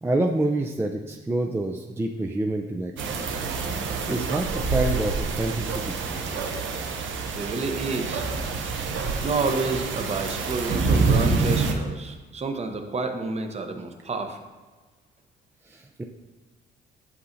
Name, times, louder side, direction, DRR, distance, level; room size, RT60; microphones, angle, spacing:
voice 1, 0.0-3.4 4.1-6.4 15.7-16.0, right 2 dB, 10° right, 2 dB, 0.4 m, -28 dB
sound 1, 3.0-11.7, right 4 dB, 75° right, 0.8 m, -27 dB
voice 2, 7.3-8.3 9.1-14.4, right 3 dB, 35° right, 5 dB, 0.8 m, -29 dB
8.5 x 5.5 x 2.6 m, 1.3 s
cardioid pair, 90°, 20 cm